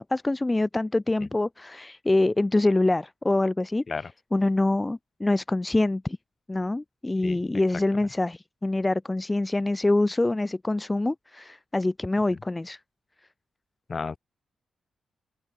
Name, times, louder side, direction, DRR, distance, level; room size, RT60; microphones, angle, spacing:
voice 1, 0.0-3.8 4.3-6.2 6.5-12.8, left 2 dB, 15° left, 1.0 m, -25 dB
voice 2, 3.9-4.1 7.2-7.4 13.9-14.2, left 4 dB, 40° left, 4.3 m, -32 dB
open air
cardioid pair, 90°, 0 cm